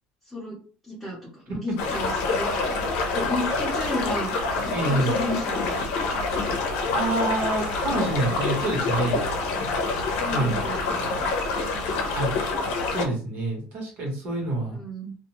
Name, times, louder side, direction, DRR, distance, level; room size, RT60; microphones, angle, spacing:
voice 1, 0.2-0.6 0.8-2.8 3.1-4.7 5.0-5.8 10.2-11.3 14.6-15.2, left 1 dB, 5° right, -8 dB, 0.8 m, -33 dB
sound 1, 1.8-13.0, left 3 dB, 70° left, 0.6 m, -26 dB
voice 2, 4.7-5.1 6.9-9.2 10.3-10.6 12.1-12.3 12.9-14.8, right 2 dB, 50° right, 0 dB, 1.2 m, -27 dB
2.5 x 2.2 x 2.9 m, 0.40 s
cardioid pair, 180°, 3 cm